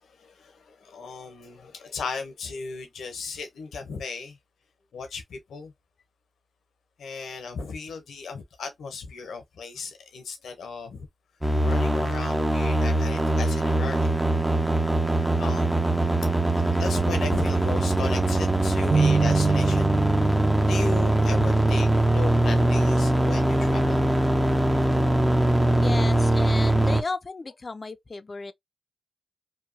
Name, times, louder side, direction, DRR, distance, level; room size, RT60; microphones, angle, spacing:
voice 1, 0.0-4.4 4.9-5.7 7.0-11.1 11.6-14.1 15.4-15.9 16.5-20.1 20.6-24.0, left 4 dB, 90° left, 0.7 m, -36 dB
sound 1, 11.4-27.0, right 1 dB, 15° right, 0.6 m, -22 dB
sound 2, 18.9-22.4, right 4 dB, 60° right, 0.3 m, -27 dB
voice 2, 25.8-28.5, left 3 dB, 45° left, 0.4 m, -34 dB
2.8 x 2.2 x 2.6 m
supercardioid pair, 40°, 0 cm